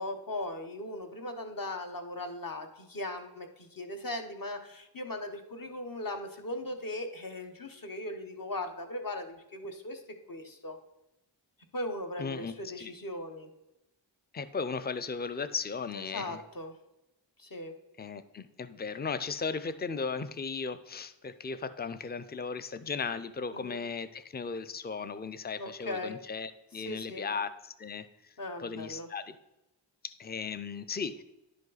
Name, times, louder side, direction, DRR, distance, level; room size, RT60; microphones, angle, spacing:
voice 1, 0.0-10.0 10.3-10.8 11.7-13.5 15.9-16.7 17.4-17.7 23.5-23.8 25.6-26.1 26.8-27.3 28.4-29.1, left 1 dB, 45° left, 5 dB, 1.0 m, -38 dB
voice 2, 12.2-12.9 14.3-16.4 18.0-28.1 28.6-29.4 30.0-31.2, left 5 dB, 20° left, 12 dB, 0.4 m, -36 dB
10.5 x 5.2 x 4.0 m, 0.93 s
wide cardioid pair, 60°, 48 cm